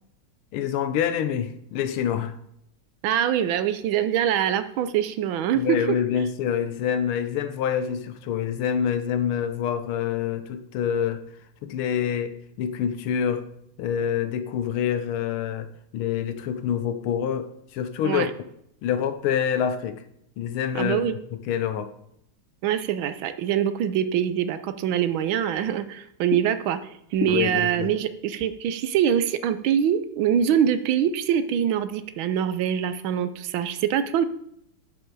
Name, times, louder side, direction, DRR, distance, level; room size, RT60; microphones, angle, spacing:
voice 1, 0.5-2.3 5.6-11.2 11.6-13.5 13.8-15.7 15.9-18.3 18.8-20.0 20.4-21.0 21.3-21.9 27.2-27.9, left 8 dB, 85° left, 10 dB, 1.6 m, -26 dB
voice 2, 3.0-5.8 18.0-18.3 20.7-21.2 22.6-26.8 27.1-34.2, right 9 dB, 75° right, 11 dB, 1.4 m, -24 dB
11.5 x 5.3 x 4.7 m, 0.76 s
omnidirectional pair, 2.3 m